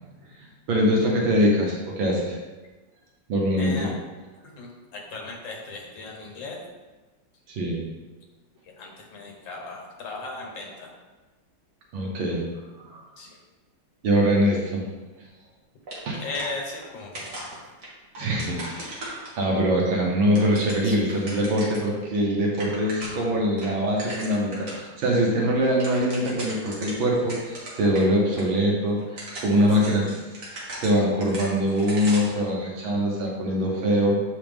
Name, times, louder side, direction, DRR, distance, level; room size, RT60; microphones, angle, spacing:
voice 1, 0.7-2.4 3.3-3.9 7.5-7.8 11.9-12.5 12.8-13.0 14.0-14.8 16.1-16.2 18.2-30.2 30.5-34.2, equal, 80° right, -2 dB, 2.0 m, -23 dB
voice 2, 3.6-3.9 4.4-6.6 8.8-10.9 13.2-13.4 14.4-14.5 16.2-17.5 20.8-21.1 29.5-29.9, left 3 dB, 70° left, 0 dB, 1.9 m, -37 dB
sound 1, 15.9-16.9 17.1-19.6 20.1-21.9 22.2-22.3 22.5-23.3 23.6-24.8 25.2-25.3 25.6-28.0 28.3-28.4 29.0-32.4, right 1 dB, 45° right, 1.9 m, -38 dB
7.3 x 5.6 x 3.5 m, 1.2 s
omnidirectional pair, 2.2 m